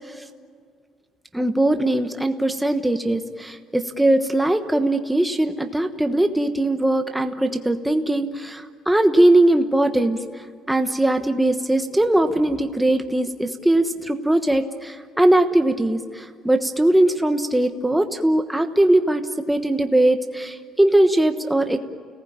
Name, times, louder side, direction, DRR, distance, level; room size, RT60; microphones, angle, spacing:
voice 1, 1.3-10.2 10.7-19.2 19.5-21.8, right 1 dB, 5° right, 6 dB, 1.2 m, -20 dB
30.0 x 19.0 x 8.8 m, 2.1 s
cardioid pair, 180°, 0 cm